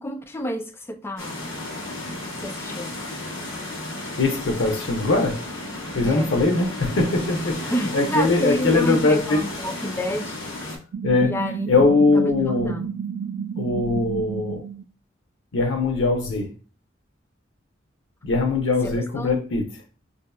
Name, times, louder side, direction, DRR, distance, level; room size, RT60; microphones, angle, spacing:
voice 1, 0.0-1.6 2.4-3.0 6.1-6.4 7.7-10.4 11.2-11.7 12.1-12.9 18.8-19.3, equal, 15° left, 0.4 m, -29 dB
sound 1, 1.2-10.8, left 1 dB, 90° left, 1.1 m, -33 dB
voice 2, 4.2-5.5 5.9-9.5 11.0-11.4 11.7-12.8 13.6-14.6 15.5-16.5 18.2-19.7, left 3 dB, 75° left, 0.7 m, -21 dB
sound 2, 10.9-14.8, right 7 dB, 65° right, 0.3 m, -31 dB
4.8 x 2.7 x 2.2 m
head